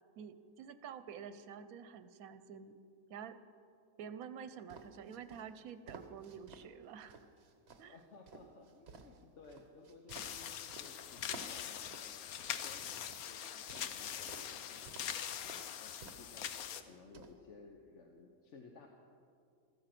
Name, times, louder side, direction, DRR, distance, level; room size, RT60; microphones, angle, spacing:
voice 1, 0.2-2.7 3.1-3.4 4.0-7.2 7.8-7.9, right 7 dB, 80° right, 12 dB, 1.1 m, -49 dB
sound 1, 4.7-6.6 7.1-10.9 11.3-13.2 13.7-14.5 14.8-15.2 15.4-15.6 16.0-16.3 16.6-17.3, right 4 dB, 50° right, 1.2 m, -54 dB
voice 2, 7.9-12.3 12.6-16.5 16.8-18.9, left 3 dB, 60° left, 2 dB, 1.3 m, -58 dB
sound 2, 10.1-16.8, left 9 dB, 90° left, 1.2 m, -43 dB
14.5 x 14.0 x 6.0 m, 2.3 s
omnidirectional pair, 1.5 m